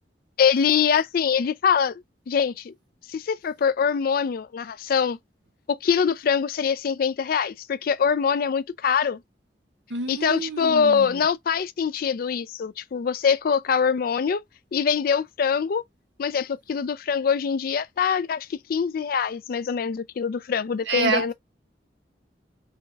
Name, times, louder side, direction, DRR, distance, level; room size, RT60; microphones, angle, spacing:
voice 1, 0.4-2.0 2.3-2.7 3.1-5.2 5.7-9.2 10.1-14.4 14.7-15.8 16.2-21.3, left 6 dB, 55° left, 0.4 m, -24 dB
voice 2, 9.9-11.2 20.9-21.3, right 4 dB, 80° right, 1.2 m, -28 dB
5.7 x 2.3 x 2.8 m
head